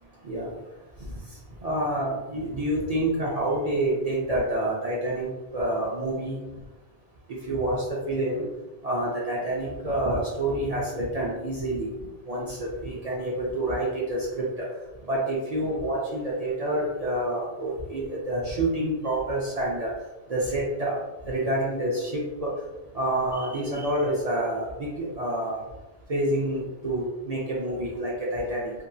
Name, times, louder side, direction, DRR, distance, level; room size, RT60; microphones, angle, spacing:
voice 1, 1.6-5.3 5.5-6.4 7.5-8.5 8.8-11.9 12.3-14.5 15.1-19.9 20.3-20.9 21.2-22.5 22.9-25.6 26.1-28.7, right 1 dB, 55° right, -4 dB, 0.4 m, -28 dB
2.7 x 2.6 x 2.3 m, 1.1 s
omnidirectional pair, 1.2 m